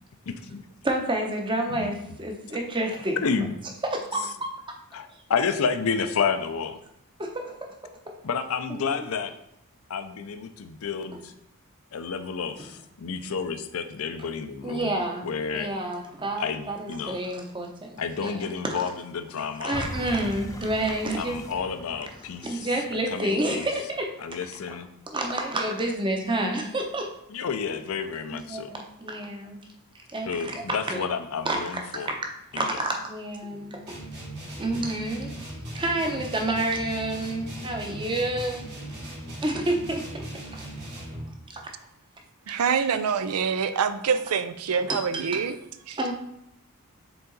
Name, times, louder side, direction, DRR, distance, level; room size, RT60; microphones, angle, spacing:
voice 1, 0.3-0.7 1.7-1.9 3.2-3.6 4.2-4.3 4.9-6.8 8.2-9.4 9.9-11.3 11.9-14.9 15.2-15.7 16.4-17.2 18.0-19.9 21.2-22.7 23.1-23.7 24.2-24.9 27.3-28.7 30.3-32.1 32.5-32.8, left 5 dB, 75° left, 10 dB, 0.5 m, -30 dB
voice 2, 0.8-3.3 3.8-4.5 7.2-7.6 8.1-8.2 8.7-9.0 14.6-15.3 15.5-18.7 19.6-21.4 22.4-24.1 25.1-27.1 28.3-29.6 30.1-31.0 31.4-32.2 32.5-33.8 34.6-35.4 35.7-38.7 39.4-40.6 41.5-41.7 44.9-45.4 46.0-46.1, right 1 dB, 20° right, 2 dB, 0.8 m, -29 dB
sound 1, 19.7-24.8 25.3-25.4, left 1 dB, 15° left, 0.5 m, -40 dB
sound 2, 33.9-41.4, right 1 dB, 50° right, 2.2 m, -39 dB
voice 3, 42.5-45.5 45.9-46.0, right 6 dB, 90° right, 11 dB, 0.5 m, -25 dB
6.9 x 3.8 x 3.9 m, 0.77 s
head